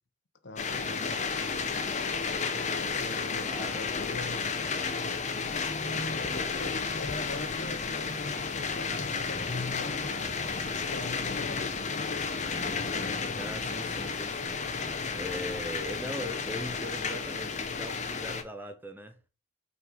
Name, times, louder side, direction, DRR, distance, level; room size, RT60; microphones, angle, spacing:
voice 1, 0.4-1.8 3.0-4.7 6.0-10.1 10.4-12.1, left 3 dB, 65° left, 0.8 m, -42 dB
sound 1, 0.6-18.4, left 5 dB, 35° left, 0.8 m, -32 dB
voice 2, 3.4-3.8 13.3-19.2, equal, 10° right, 0.7 m, -40 dB
5.4 x 3.8 x 4.9 m
head